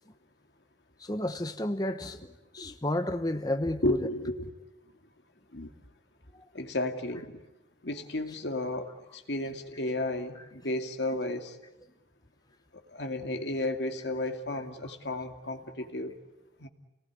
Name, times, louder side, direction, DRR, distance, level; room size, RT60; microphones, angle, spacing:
voice 1, 1.0-2.3 2.5-4.1 6.3-6.5, left 1 dB, 20° left, 1.1 m, -31 dB
voice 2, 3.8-4.5 5.5-5.7 6.5-7.3 7.8-11.6 12.9-16.1 16.6-16.7, left 1 dB, 80° left, 2.4 m, -33 dB
29.5 x 19.5 x 9.7 m
head